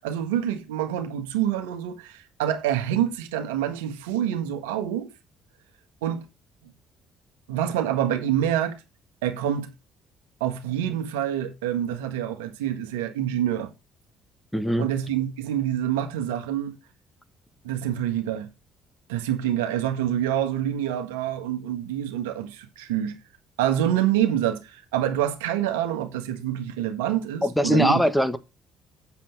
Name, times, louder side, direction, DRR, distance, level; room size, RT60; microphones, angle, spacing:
voice 1, 0.0-5.1 6.0-6.2 6.6-6.7 7.5-8.8 9.2-9.7 10.4-13.7 14.8-16.7 17.6-18.5 19.1-23.2 23.6-28.0, right 11 dB, 90° right, 1.5 m, -26 dB
voice 2, 14.5-14.9 27.4-28.4, equal, 5° left, 1.4 m, -21 dB
7.7 x 7.1 x 4.5 m
hypercardioid pair, 60°, 0 cm